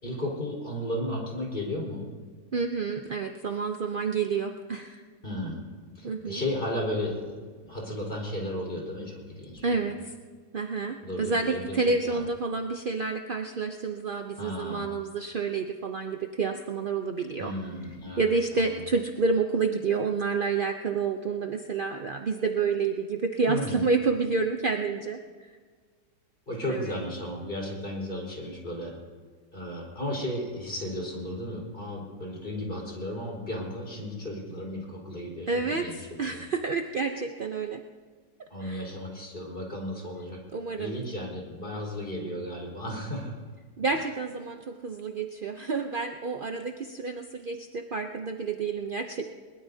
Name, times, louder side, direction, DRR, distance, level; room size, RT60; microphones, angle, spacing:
voice 1, 0.0-2.1 5.2-5.6 5.9-7.3 7.6-9.7 11.0-11.8 12.1-12.2 14.4-14.9 17.4-18.3 18.5-18.8 23.5-23.8 26.5-29.0 29.5-35.9 36.2-36.4 38.5-40.4 40.8-43.3 43.9-44.0, left 1 dB, 30° left, -2 dB, 4.6 m, -34 dB
voice 2, 2.5-5.0 6.0-6.4 9.6-10.1 10.5-17.5 18.2-25.5 26.7-26.9 35.5-37.8 38.4-38.8 40.5-41.0 43.8-49.2, right 4 dB, 60° right, 4 dB, 0.5 m, -29 dB
22.0 x 21.0 x 2.8 m, 1.5 s
omnidirectional pair, 1.9 m